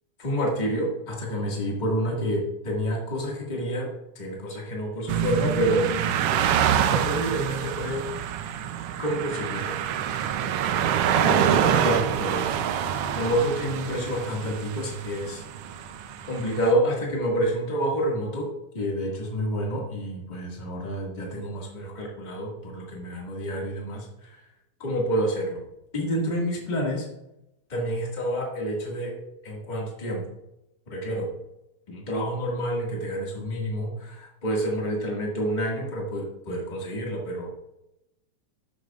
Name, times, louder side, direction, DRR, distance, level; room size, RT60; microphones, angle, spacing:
voice 1, 0.2-8.1 9.0-9.8 11.2-12.7 13.1-15.4 16.2-18.5 18.7-24.3 24.8-25.6 25.9-27.1 27.7-29.1 29.4-30.2 30.9-31.3 31.9-37.5, equal, 20° left, -2 dB, 1.5 m, -28 dB
sound 1, 5.1-16.7, right 9 dB, 85° right, 1.3 m, -26 dB
11.5 x 8.6 x 2.4 m, 0.90 s
omnidirectional pair, 3.4 m